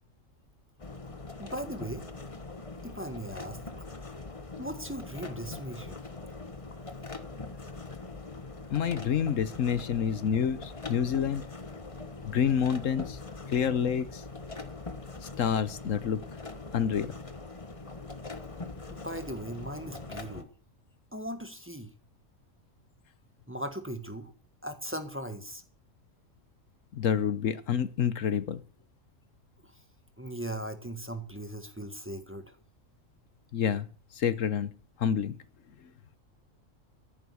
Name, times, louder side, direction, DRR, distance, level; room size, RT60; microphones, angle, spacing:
sound 1, 0.8-20.4, left 3 dB, 25° left, 1.3 m, -42 dB
voice 1, 1.4-2.1 2.8-3.6 4.6-6.0 18.9-20.5 21.1-21.9 23.5-24.3 24.6-25.6 29.6-29.7 30.2-32.5, right 1 dB, 10° right, 7 dB, 1.6 m, -38 dB
voice 2, 8.7-11.4 12.2-13.2 13.5-14.2 15.2-16.2 16.7-17.1 26.9-28.6 33.5-33.9 34.1-34.7 35.0-35.4, left 8 dB, 75° left, 15 dB, 1.2 m, -28 dB
14.0 x 10.5 x 7.0 m, 0.41 s
omnidirectional pair, 1.4 m